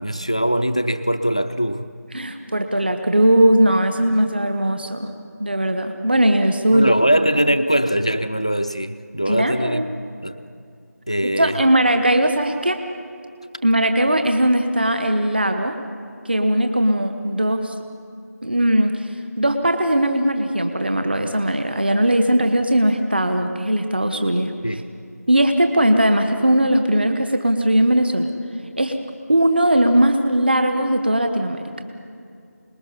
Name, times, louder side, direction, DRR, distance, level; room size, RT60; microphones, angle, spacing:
voice 1, 0.0-1.9 6.7-9.8 10.2-10.4 11.1-11.6 24.6-24.8, equal, 20° left, 10 dB, 0.4 m, -21 dB
voice 2, 2.1-5.1 5.4-6.9 9.3-9.8 11.4-12.8 13.6-15.8 16.2-17.7 18.4-19.1 19.4-24.8 25.3-28.3 28.8-28.9 29.3-31.6, right 1 dB, 35° right, 6 dB, 1.2 m, -19 dB
27.5 x 20.0 x 5.6 m, 2.5 s
figure-of-eight pair, 180°, 9 cm